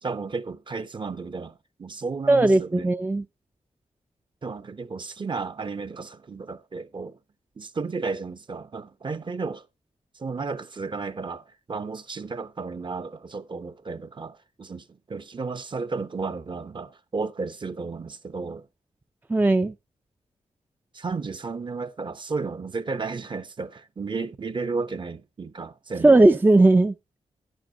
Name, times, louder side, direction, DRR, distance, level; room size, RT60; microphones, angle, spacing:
voice 1, 0.0-2.9 4.4-7.2 7.6-9.7 10.1-18.7 20.9-26.2, right 4 dB, 40° right, 0.8 m, -33 dB
voice 2, 2.3-3.2 19.3-19.7 26.0-26.9, right 2 dB, 15° right, 0.5 m, -17 dB
11.5 x 9.9 x 2.6 m
cardioid pair, 90°, 13 cm